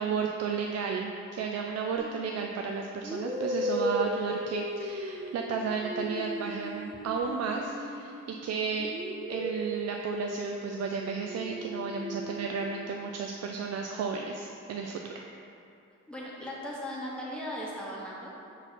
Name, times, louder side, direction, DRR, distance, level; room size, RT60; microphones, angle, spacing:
voice 1, 0.0-8.9 9.3-15.2, right 5 dB, 55° right, 2 dB, 0.4 m, -33 dB
sound 1, 2.0-2.2 3.0-8.4 8.8-12.7, equal, 15° right, 0.6 m, -36 dB
voice 2, 16.1-18.3, equal, 5° left, -6 dB, 1.1 m, -38 dB
5.3 x 4.0 x 4.5 m, 2.6 s
cardioid pair, 90°, 30 cm